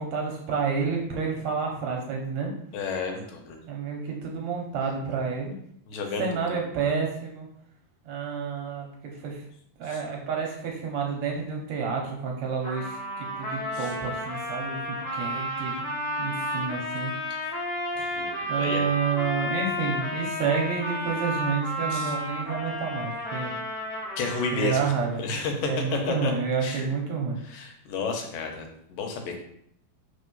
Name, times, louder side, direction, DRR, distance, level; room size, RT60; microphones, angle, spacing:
voice 1, 0.0-2.5 3.6-5.5 6.2-7.5 8.1-9.4 9.8-17.1 18.0-18.1 18.5-23.5 24.5-25.2 25.6-27.4, right 5 dB, 70° right, 0 dB, 2.0 m, -29 dB
voice 2, 2.7-3.6 5.9-6.6 9.8-10.0 13.7-13.9 18.1-19.0 21.9-22.2 24.2-24.9 25.2-26.3 26.6-26.9 27.4-29.4, left 4 dB, 90° left, 3 dB, 2.7 m, -31 dB
Trumpet, 12.6-25.1, equal, 30° left, 0.7 m, -32 dB
4.8 x 4.0 x 5.4 m, 0.72 s
omnidirectional pair, 3.8 m